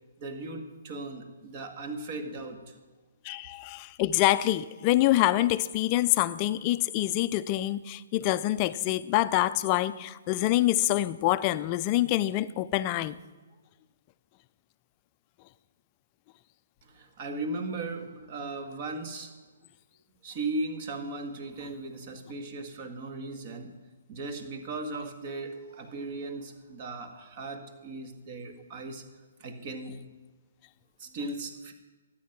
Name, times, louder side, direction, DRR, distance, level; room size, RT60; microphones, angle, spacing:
voice 1, 0.2-2.7 16.8-19.3 20.2-23.7 24.1-29.0 29.4-30.0 31.0-31.7, right 2 dB, 40° right, 1.8 m, -37 dB
voice 2, 3.2-13.2, left 15 dB, 30° left, 0.4 m, -26 dB
12.5 x 9.1 x 6.0 m
hypercardioid pair, 140°, 0 cm